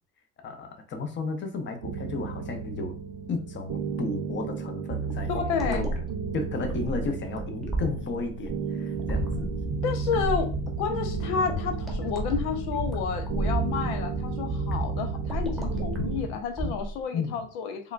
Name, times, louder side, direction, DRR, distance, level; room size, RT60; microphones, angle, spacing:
voice 1, 0.4-3.0 3.3-5.9 6.3-9.5 17.1-17.4, left 3 dB, 35° left, 6 dB, 0.7 m, -33 dB
sound 1, 1.8-16.2, right 5 dB, 70° right, 0.8 m, -34 dB
sound 2, 5.1-17.0, right 1 dB, ahead, 0.9 m, -33 dB
voice 2, 5.3-5.9 9.8-10.5 10.8-17.9, left 6 dB, 85° left, 5 dB, 0.6 m, -30 dB
sound 3, 8.9-16.3, right 1 dB, 20° right, 0.4 m, -36 dB
3.6 x 2.2 x 2.4 m, 0.38 s
supercardioid pair, 85°, 32 cm